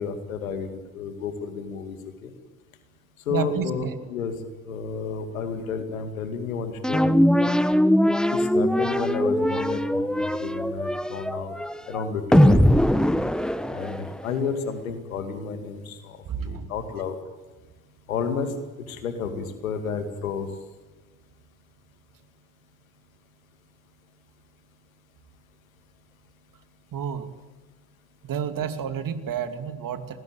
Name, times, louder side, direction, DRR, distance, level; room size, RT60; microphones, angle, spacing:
voice 1, 0.0-2.0 2.2-2.3 3.3-4.3 4.7-7.6 8.3-11.5 11.9-12.8 13.7-17.2 18.1-18.5 18.8-20.5, left 5 dB, 85° left, 9 dB, 2.4 m, -31 dB
voice 2, 3.3-3.9 16.3-16.7 26.9-27.3 28.2-30.2, right 7 dB, 55° right, 9 dB, 2.7 m, -30 dB
sound 1, 6.8-14.3, equal, ahead, 1.4 m, -21 dB
26.5 x 19.5 x 9.0 m, 1.2 s
hypercardioid pair, 50°, 40 cm